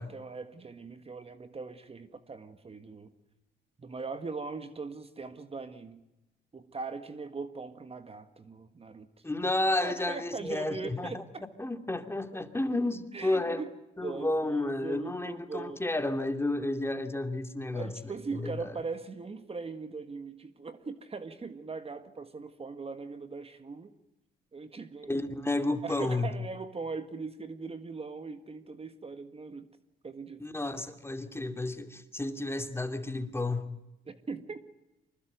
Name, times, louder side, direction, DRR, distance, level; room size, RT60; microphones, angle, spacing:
voice 1, 0.0-3.1 3.8-6.0 6.5-9.1 9.8-11.4 13.1-13.7 14.0-15.8 17.7-23.9 24.5-25.1 25.8-29.7 30.0-30.4 34.0-34.6, right 4 dB, 30° right, 10 dB, 1.6 m, -40 dB
voice 2, 9.2-11.2 11.6-13.6 14.0-18.1 18.4-18.7 25.1-26.3 30.4-33.7, left 2 dB, 10° left, 8 dB, 2.5 m, -31 dB
25.5 x 20.5 x 9.2 m, 0.94 s
cardioid pair, 90°, 20 cm